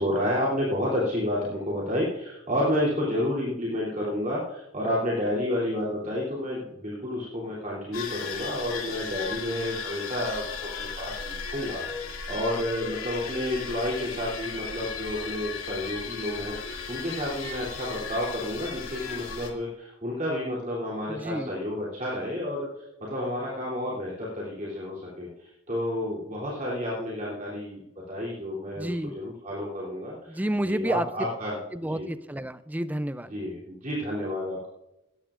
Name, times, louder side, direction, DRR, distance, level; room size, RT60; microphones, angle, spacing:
voice 1, 0.0-27.8 28.1-32.1 33.2-34.7, left 1 dB, 35° right, -6 dB, 3.0 m, -30 dB
sound 1, 7.9-19.5, left 5 dB, 85° left, 2.3 m, -36 dB
voice 2, 21.1-21.5 28.8-29.1 30.3-31.1 31.7-33.3, right 1 dB, 10° right, 13 dB, 0.4 m, -30 dB
19.0 x 13.5 x 2.5 m, 0.88 s
head